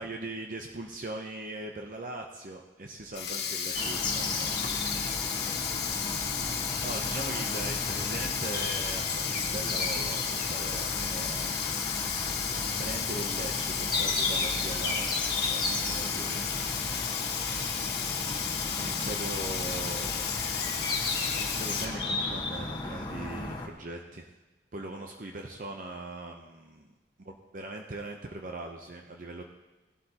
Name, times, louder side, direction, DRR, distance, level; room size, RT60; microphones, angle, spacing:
voice 1, 0.0-4.5 6.8-11.8 12.5-15.1 15.4-16.5 18.7-20.3 21.3-24.3 24.7-26.9 27.3-29.4, right 2 dB, 50° right, 2 dB, 0.7 m, -40 dB
Sink (filling or washing), 3.0-21.9, left 7 dB, 65° left, 1.5 m, -33 dB
sound 1, 3.7-23.7, left 3 dB, 25° left, 1.2 m, -34 dB
18.5 x 12.0 x 2.9 m, 1.1 s
head